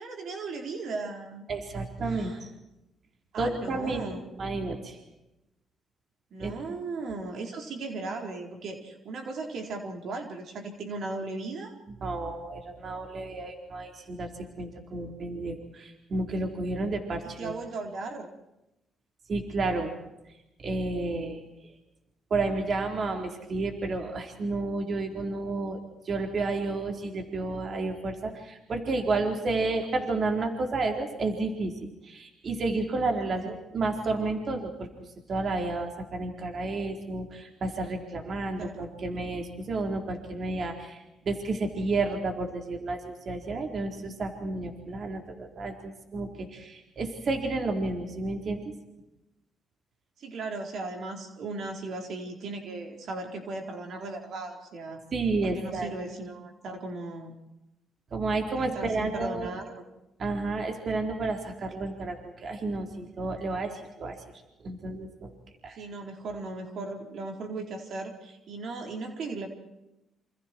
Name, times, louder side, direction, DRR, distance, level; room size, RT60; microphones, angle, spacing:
voice 1, 0.0-1.5 2.0-2.4 3.3-4.2 6.3-11.7 17.2-18.3 33.3-33.6 38.6-39.0 50.2-55.0 55.4-57.3 58.5-59.8 65.7-69.5, right 3 dB, 65° right, 3 dB, 4.4 m, -37 dB
voice 2, 1.5-2.5 3.4-4.1 4.4-5.0 6.4-6.5 12.0-14.3 14.6-17.5 19.3-19.9 20.6-21.4 22.3-25.8 26.1-31.7 32.0-34.9 35.3-48.6 55.1-55.9 58.1-59.6 60.2-64.2 64.6-65.3 65.6-65.8, right 3 dB, 50° right, 4 dB, 4.3 m, -31 dB
28.5 x 27.5 x 4.7 m, 0.92 s
cardioid pair, 90°, 0 cm